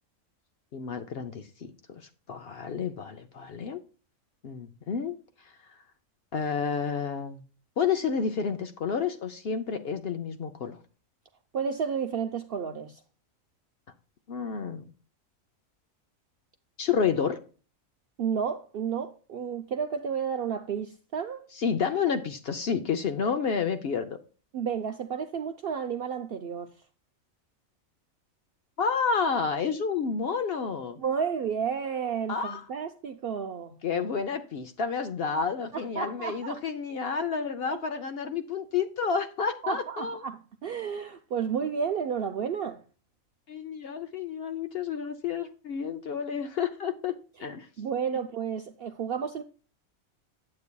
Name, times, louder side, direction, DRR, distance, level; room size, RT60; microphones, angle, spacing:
voice 1, 0.7-2.0 2.3-3.8 4.4-5.2 6.3-7.4 7.8-10.8 14.3-14.8 16.8-17.4 21.6-24.2 28.8-31.0 32.3-32.6 33.8-40.2 43.5-47.7, left 6 dB, 60° left, 0.7 m, -30 dB
voice 2, 11.5-13.0 18.2-21.4 24.5-26.7 31.0-33.8 35.7-36.6 37.7-37.8 39.6-42.8 47.4-49.4, right 7 dB, 65° right, 0.6 m, -32 dB
8.6 x 8.1 x 2.2 m
omnidirectional pair, 1.4 m